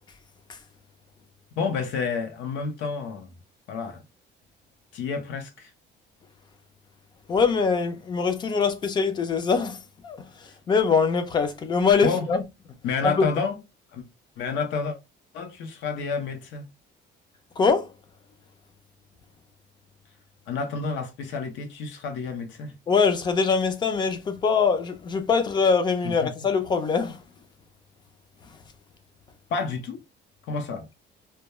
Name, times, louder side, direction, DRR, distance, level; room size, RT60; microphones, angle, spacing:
voice 1, 1.6-3.3 3.7-4.0 4.9-5.7 12.0-12.3 12.8-13.6 13.9-14.0 14.4-15.0 15.3-16.7 20.5-22.7 26.0-26.3 29.5-30.0 30.4-30.9, left 5 dB, 80° left, 0.7 m, -29 dB
voice 2, 7.3-9.8 10.0-10.2 10.7-12.4 13.0-13.3 17.6-17.9 22.9-27.2, left 5 dB, 25° left, 0.4 m, -23 dB
2.2 x 2.2 x 2.9 m
cardioid pair, 175°, 19 cm